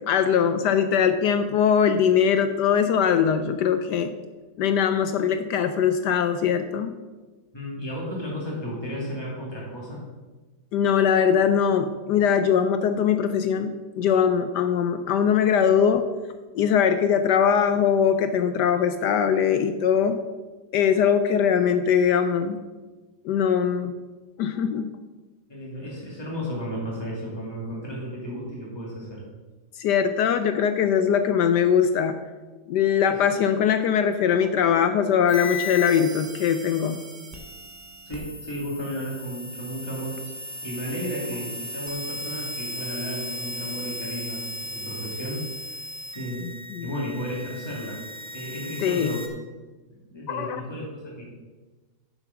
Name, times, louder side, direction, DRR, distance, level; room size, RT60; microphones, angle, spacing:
voice 1, 0.0-4.1 4.6-6.9 10.7-16.1 16.5-20.2 20.7-22.6 23.2-23.9 24.4-24.9 29.8-32.2 32.7-37.0 46.7-46.9 48.8-49.2 50.3-50.6, left 7 dB, 75° left, 9 dB, 1.0 m, -21 dB
voice 2, 7.5-10.0 25.5-29.2 33.1-33.2 38.0-40.2 40.6-45.4 45.7-45.8 46.1-46.6 46.8-48.0 48.3-49.3 49.9-51.3, equal, 10° left, -5 dB, 2.6 m, -33 dB
sound 1, 35.3-49.3, left 2 dB, 20° right, 0.4 m, -36 dB
7.1 x 6.9 x 5.9 m, 1.2 s
omnidirectional pair, 2.1 m